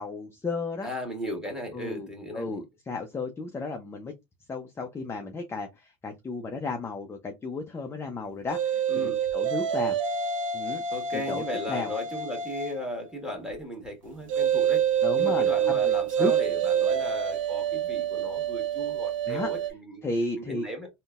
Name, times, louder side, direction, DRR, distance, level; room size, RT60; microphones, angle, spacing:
voice 1, 0.0-0.9 1.7-2.1 2.3-4.1 4.5-10.0 10.5-10.8 11.1-11.9 15.0-15.5 15.8-16.3 19.3-19.5 20.0-20.6, left 3 dB, 15° left, 0.5 m, -33 dB
voice 2, 0.8-2.6 8.9-9.2 10.9-14.8 15.2-20.0 20.3-20.9, equal, 5° right, 1.5 m, -36 dB
sound 1, 8.5-12.9 14.3-19.7, right 8 dB, 85° right, 0.6 m, -27 dB
3.7 x 2.2 x 2.3 m
hypercardioid pair, 90°, 16 cm